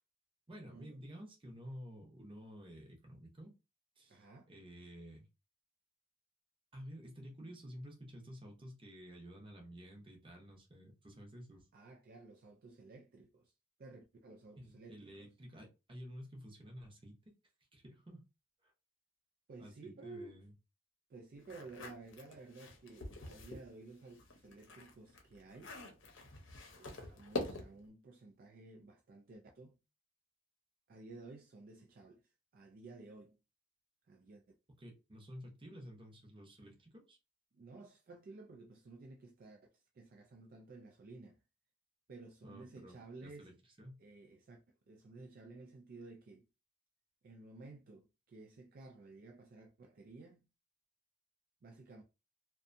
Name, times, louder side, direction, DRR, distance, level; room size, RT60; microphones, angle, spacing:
voice 1, 0.5-3.5 4.0-5.3 6.7-11.7 14.6-17.3 17.7-18.2 19.6-20.5 34.8-37.2 42.4-43.5 43.8-44.0, equal, 25° right, 0.7 m, -52 dB
voice 2, 4.1-4.5 11.7-13.5 13.8-15.3 19.5-20.4 21.1-25.8 26.7-29.8 30.9-32.2 32.5-33.4 34.1-34.4 37.5-41.4 42.1-43.5 44.0-46.5 47.2-50.5 51.6-52.0, right 3 dB, 50° right, 0.4 m, -54 dB
sound 1, 21.4-23.7 24.1-27.9, left 2 dB, 70° left, 0.7 m, -45 dB
2.6 x 2.2 x 2.5 m
head